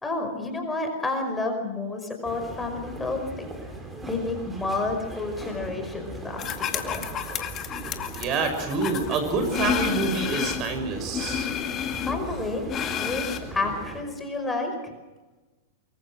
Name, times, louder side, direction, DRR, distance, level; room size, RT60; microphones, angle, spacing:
voice 1, 0.0-3.2 4.1-7.0 12.0-12.6 13.0-14.9, left 3 dB, 10° left, 4 dB, 5.3 m, -30 dB
sound 1, 2.2-14.0, right 2 dB, 10° right, 5.3 m, -39 dB
sound 2, 6.4-10.7 11.1-13.4, left 9 dB, 35° left, 2.1 m, -30 dB
voice 2, 8.2-11.5, right 3 dB, 40° right, 7 dB, 6.3 m, -27 dB
24.0 x 23.0 x 6.2 m, 1.2 s
hypercardioid pair, 110°, 0 cm